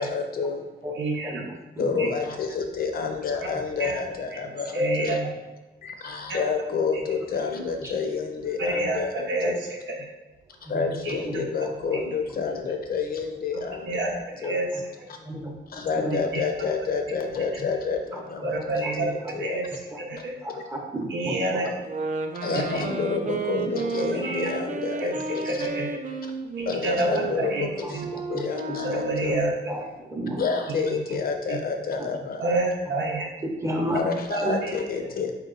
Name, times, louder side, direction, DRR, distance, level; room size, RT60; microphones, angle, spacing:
voice 1, 0.0-0.6 1.8-5.2 5.8-9.6 10.6-14.6 15.7-19.6 20.5-20.6 22.4-25.7 26.7-29.4 30.4-32.6 33.9-35.3, left 5 dB, 55° left, 4 dB, 0.6 m, -29 dB
voice 2, 1.0-1.5 2.0-2.1 3.8-4.0 4.3-4.4 4.7-5.3 6.3-6.4 8.6-10.1 11.0-11.4 13.5-14.1 14.4-14.7 16.3-16.4 18.4-19.7 20.0-20.3 21.1-21.7 22.5-22.8 24.0-24.6 25.0-26.0 26.8-27.7 27.9-28.1 28.8-29.5 30.9-31.0 31.5-31.6 32.4-33.3 34.3-34.7, right 2 dB, 80° right, -1 dB, 0.7 m, -28 dB
voice 3, 1.7-2.1 7.8-7.9 10.7-10.8 11.2-11.7 15.2-16.1 19.9-20.0 20.4-21.4 27.8-27.9 28.3-28.4 29.7-29.8 30.1-30.4 33.6-34.0 34.4-34.5, right 1 dB, 15° right, -1 dB, 0.7 m, -32 dB
sound 1, 21.8-29.4, right 3 dB, 45° right, 0.4 m, -33 dB
4.3 x 2.9 x 3.8 m, 1.1 s
wide cardioid pair, 135°, 19 cm